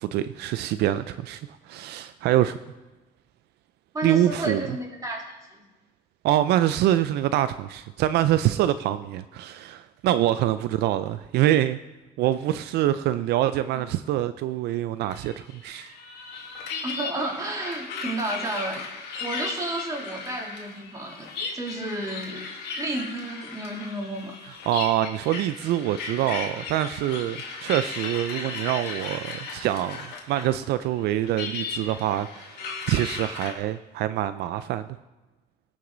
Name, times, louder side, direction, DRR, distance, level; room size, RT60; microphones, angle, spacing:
voice 1, 0.0-2.6 4.0-4.6 6.2-11.8 12.2-15.9 24.7-30.0 30.3-34.9, right 13 dB, 75° right, 12 dB, 0.4 m, -25 dB
voice 2, 3.9-5.6 16.8-18.8 19.2-21.3 21.5-22.4 22.7-24.4, right 1 dB, 20° right, -2 dB, 3.0 m, -32 dB
sound 1, 15.1-30.6 30.8-33.5, left 4 dB, 75° left, 2.1 m, -36 dB
17.5 x 6.3 x 3.9 m, 1.1 s
cardioid pair, 110°, 17 cm